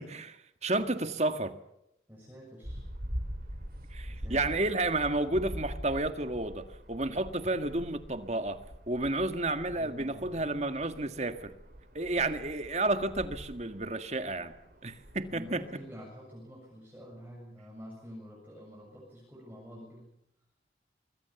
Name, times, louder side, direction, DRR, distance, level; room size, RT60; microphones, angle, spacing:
voice 1, 0.0-1.5 3.9-8.6 8.9-11.5 11.9-14.5 14.8-15.6, right 2 dB, 40° right, 8 dB, 1.8 m, -31 dB
voice 2, 2.1-2.8 4.1-4.6 9.6-10.4 15.3-20.1, equal, 10° right, -3 dB, 6.9 m, -48 dB
sound 1, 2.6-15.8, equal, 55° right, 6.4 m, -44 dB
25.5 x 22.0 x 7.1 m, 0.80 s
head